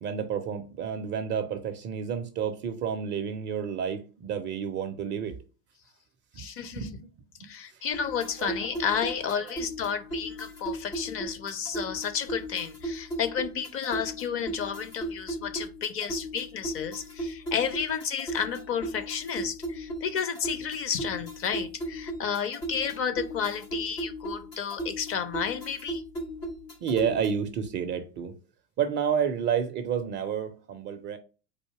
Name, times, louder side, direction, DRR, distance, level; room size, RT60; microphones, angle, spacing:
voice 1, 0.0-5.4 6.3-7.1 7.4-7.8 8.4-8.5 26.8-28.3 28.8-31.2, right 7 dB, 25° right, 0.4 m, -30 dB
voice 2, 6.4-6.9 7.4-26.0, left 7 dB, 30° left, 0.5 m, -32 dB
sound 1, 7.9-27.5, right 1 dB, 90° left, 1.8 m, -37 dB
4.2 x 2.6 x 4.5 m
figure-of-eight pair, 80°, 47 cm